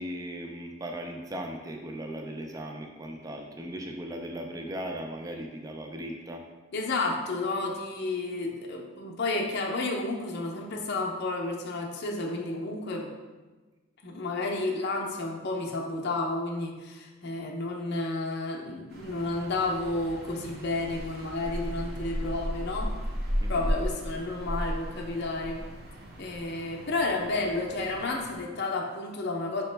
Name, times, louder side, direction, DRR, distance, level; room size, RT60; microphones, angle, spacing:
voice 1, 0.0-6.4 23.4-23.7, right 1 dB, 15° right, 2 dB, 0.3 m, -38 dB
voice 2, 6.7-13.1 14.0-22.9 23.5-25.6 26.2-29.6, left 2 dB, 50° left, 0 dB, 0.6 m, -31 dB
sound 1, 18.9-28.3, equal, 45° right, 0.6 m, -35 dB
5.2 x 2.9 x 3.3 m, 1.3 s
head